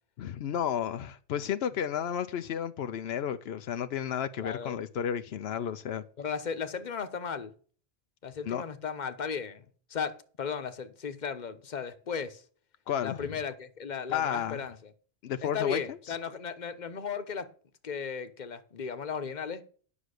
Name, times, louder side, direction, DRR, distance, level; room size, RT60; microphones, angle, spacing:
voice 1, 0.2-6.0 8.4-8.6 12.9-13.3 14.1-14.6 15.2-16.0, left 9 dB, 85° left, 0.9 m, -32 dB
voice 2, 4.4-4.8 6.2-7.5 8.2-12.4 13.0-14.9 15.4-17.5 17.8-19.6, left 6 dB, 50° left, 1.1 m, -36 dB
9.9 x 6.1 x 6.5 m
omnidirectional pair, 1.0 m